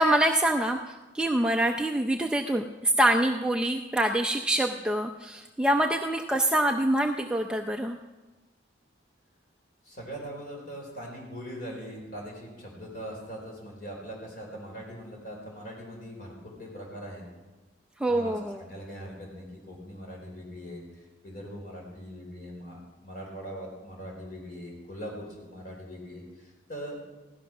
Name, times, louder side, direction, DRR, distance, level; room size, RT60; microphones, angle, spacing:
voice 1, 0.0-8.0 18.0-18.6, right 1 dB, 5° right, 4 dB, 0.5 m, -25 dB
voice 2, 9.8-17.2 18.1-27.0, equal, 45° left, -1 dB, 4.1 m, -41 dB
16.0 x 13.0 x 6.0 m, 1.2 s
head